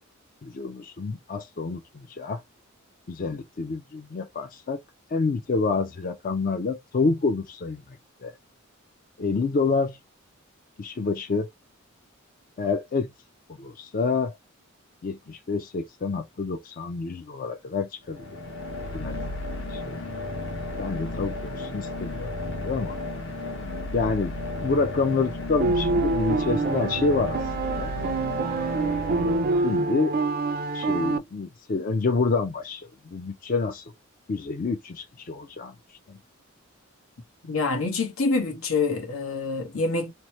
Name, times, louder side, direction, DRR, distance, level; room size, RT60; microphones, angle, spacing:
voice 1, 0.4-2.4 3.1-4.8 5.1-8.3 9.2-10.0 10.8-11.5 12.6-13.1 13.5-14.3 15.0-18.4 18.9-19.2 19.7-20.0 20.8-22.3 22.6-23.0 23.9-24.3 24.6-27.4 27.8-27.9 29.1-30.1 30.7-33.8 34.3-36.2, left 4 dB, 45° left, 0.4 m, -28 dB
sound 1, 18.0-29.9, left 2 dB, 65° left, 1.2 m, -33 dB
sound 2, 25.6-31.2, right 3 dB, 45° right, 0.4 m, -26 dB
voice 2, 37.5-40.1, left 3 dB, 85° left, 1.0 m, -26 dB
2.9 x 2.1 x 2.9 m
head